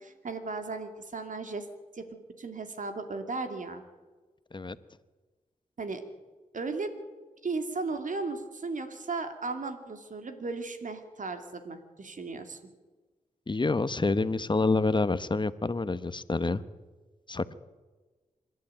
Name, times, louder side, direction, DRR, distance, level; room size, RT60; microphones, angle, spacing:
voice 1, 0.0-1.7 1.9-3.8 5.8-6.0 6.5-6.9 7.4-12.6, right 3 dB, 65° right, 7 dB, 2.8 m, -36 dB
voice 2, 13.5-16.6 17.3-17.5, left 3 dB, 35° left, 14 dB, 1.1 m, -27 dB
25.5 x 11.5 x 9.1 m, 1.3 s
cardioid pair, 45°, 14 cm